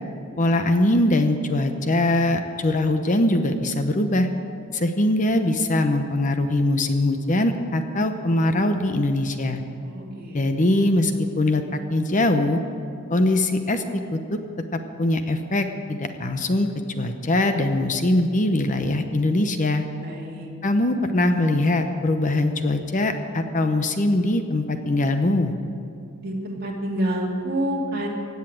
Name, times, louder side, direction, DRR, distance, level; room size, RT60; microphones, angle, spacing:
voice 1, 0.4-4.3 4.7-9.6 10.3-12.6 13.1-13.8 14.1-14.4 14.7-19.8 20.6-25.5, left 1 dB, 35° left, 7 dB, 0.8 m, -22 dB
voice 2, 9.8-10.4 20.0-20.5 26.2-28.1, right 1 dB, 45° right, -2 dB, 2.6 m, -28 dB
16.5 x 8.3 x 9.2 m, 2.5 s
head